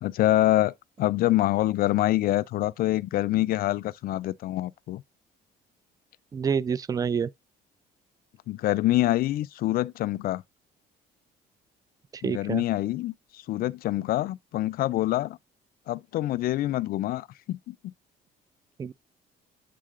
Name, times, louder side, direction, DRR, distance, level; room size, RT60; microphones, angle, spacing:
voice 1, 0.0-5.0 8.5-10.4 12.2-15.4 15.9-17.8, left 15 dB, 60° left, 0.4 m, -26 dB
voice 2, 6.3-7.3 12.1-12.6 18.8-18.9, right 6 dB, 20° right, 0.3 m, -27 dB
7.6 x 3.7 x 3.7 m
cardioid pair, 110°, 17 cm